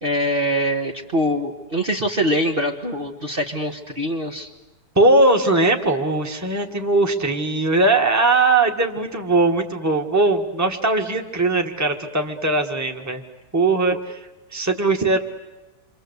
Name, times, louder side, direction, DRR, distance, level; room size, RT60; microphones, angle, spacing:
voice 1, 0.0-4.5 13.9-14.0, equal, 35° right, 0 dB, 1.6 m, -23 dB
voice 2, 5.0-13.2 13.5-14.2 14.5-15.2, right 2 dB, 10° right, 4 dB, 1.7 m, -19 dB
28.5 x 25.0 x 8.2 m, 1.1 s
omnidirectional pair, 1.8 m